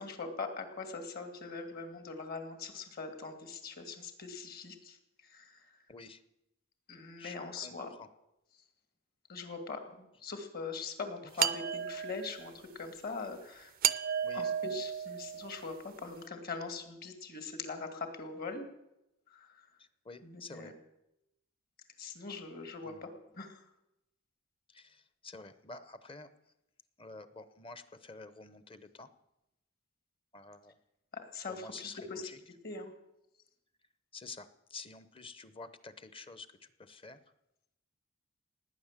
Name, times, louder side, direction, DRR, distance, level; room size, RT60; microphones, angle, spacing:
voice 1, 0.0-5.9 6.9-7.9 9.3-13.8 14.3-18.7 19.3-19.7 20.2-20.7 22.0-23.1 23.3-23.7 31.3-32.2 32.6-32.9, left 4 dB, 50° left, 7 dB, 2.2 m, -42 dB
voice 2, 5.9-6.2 7.2-8.1 11.4-11.5 14.2-14.5 19.8-20.7 22.8-23.1 24.7-26.5 27.0-29.1 30.3-30.8 31.5-32.4 34.1-37.2, left 3 dB, 25° left, 13 dB, 0.9 m, -49 dB
sound 1, 11.4-12.5 13.8-15.7, right 9 dB, 45° right, 0.5 m, -33 dB
17.5 x 9.8 x 7.4 m, 0.88 s
head